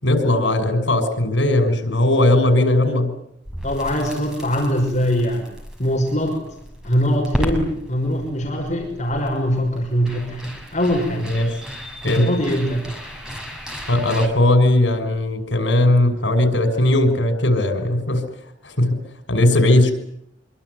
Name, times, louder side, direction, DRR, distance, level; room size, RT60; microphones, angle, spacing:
voice 1, 0.0-3.1 11.2-11.5 12.0-12.3 13.9-18.2 18.6-19.0 19.3-19.9, left 1 dB, 90° left, 8 dB, 6.1 m, -18 dB
Crackle, 3.5-14.3, equal, 5° right, 6.4 m, -34 dB
voice 2, 3.6-5.5 5.8-6.4 6.8-11.3 12.1-12.8, equal, 40° left, 1 dB, 6.0 m, -22 dB
26.0 x 24.0 x 9.6 m, 0.74 s
head